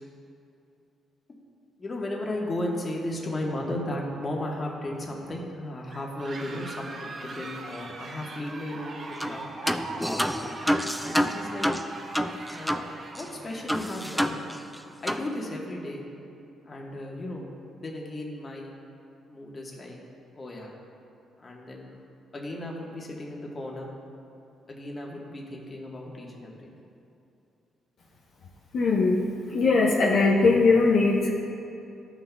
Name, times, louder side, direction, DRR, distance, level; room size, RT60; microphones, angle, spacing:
voice 1, 1.8-10.5 11.0-11.7 12.5-12.8 13.1-14.4 15.0-16.0 16.6-17.4 17.7-18.7 19.3-20.0 20.3-20.7 21.4-21.9 22.3-23.9 24.7-26.7, left 1 dB, 35° left, -1 dB, 1.3 m, -35 dB
sound 1, 5.9-13.7, right 3 dB, 45° right, 0.7 m, -41 dB
sound 2, 9.2-9.4 9.7-12.9 13.1-13.2 13.7-14.8 15.1-15.3, equal, ahead, 0.4 m, -28 dB
voice 2, 28.7-31.3, left 3 dB, 65° left, -3 dB, 0.8 m, -21 dB
12.5 x 5.9 x 2.3 m, 2.7 s
cardioid pair, 90°, 0 cm